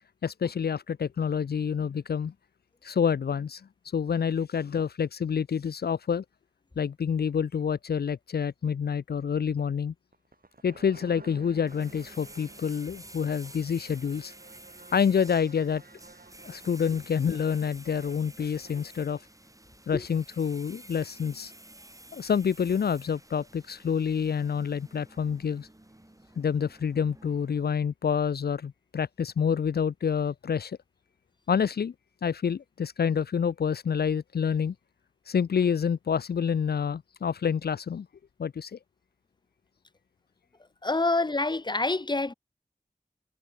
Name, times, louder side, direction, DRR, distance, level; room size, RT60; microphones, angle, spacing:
voice 1, 0.2-2.3 2.8-3.6 3.9-6.2 6.8-9.9 10.6-14.3 14.9-15.8 16.4-19.2 19.9-21.5 22.1-25.7 26.4-30.8 31.5-31.9 32.2-34.7 35.3-38.1 38.4-38.8, left 7 dB, 75° left, 0.4 m, -28 dB
sound 1, 10.1-19.0, right 3 dB, 65° right, 4.9 m, -53 dB
sound 2, 11.7-27.7, right 1 dB, 20° right, 2.0 m, -51 dB
voice 2, 40.8-42.3, left 2 dB, 25° left, 0.8 m, -26 dB
wide cardioid pair, 50°, 16 cm